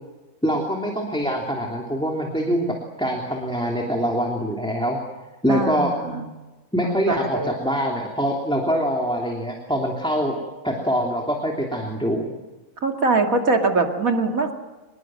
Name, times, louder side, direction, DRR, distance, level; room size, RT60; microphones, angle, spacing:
voice 1, 0.4-5.0 5.4-5.9 6.7-10.4 10.6-12.3, equal, 5° left, 0 dB, 3.1 m, -24 dB
voice 2, 5.5-6.3 6.8-7.5 12.8-14.5, right 3 dB, 80° right, 3 dB, 2.8 m, -22 dB
26.5 x 21.0 x 7.8 m, 1.2 s
omnidirectional pair, 1.4 m